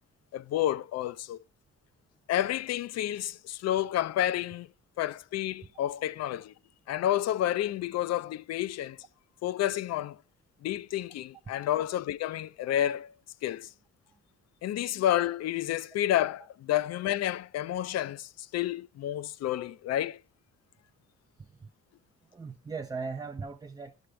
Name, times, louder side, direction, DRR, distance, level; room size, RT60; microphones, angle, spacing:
voice 1, 0.3-1.4 2.3-4.7 5.0-6.5 6.9-9.0 9.4-10.2 10.6-13.1 13.4-13.7 14.6-20.2, left 12 dB, 60° left, 0.4 m, -30 dB
voice 2, 21.4-21.7 22.3-24.1, right 4 dB, 15° right, 0.3 m, -39 dB
11.0 x 6.3 x 3.2 m
cardioid pair, 90°, 30 cm